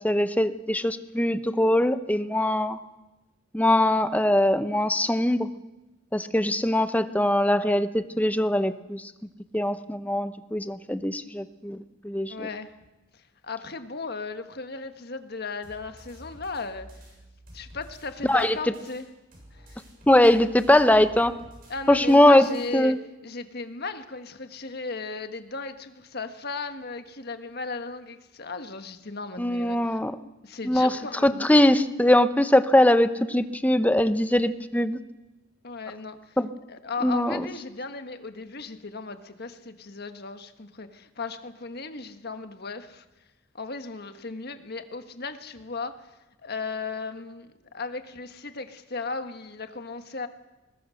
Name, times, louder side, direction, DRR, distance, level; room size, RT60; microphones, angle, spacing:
voice 1, 0.0-2.8 3.5-5.5 6.1-9.0 9.5-11.8 12.0-12.5 18.3-18.6 20.1-21.3 21.9-22.5 22.7-23.0 29.4-30.1 30.6-31.0 31.2-35.0 36.4-36.5 37.0-37.5, left 1 dB, 10° left, 11 dB, 0.9 m, -21 dB
voice 2, 12.3-12.7 13.1-16.9 17.5-19.1 19.5-19.8 21.7-22.9 23.2-30.0 30.4-31.5 35.6-36.4 36.7-43.0 43.5-46.1 46.4-50.3, left 4 dB, 50° left, 8 dB, 1.5 m, -36 dB
sound 1, 15.6-19.0 19.3-22.7, equal, 45° right, 7.9 m, -49 dB
23.0 x 20.5 x 6.5 m, 1.0 s
head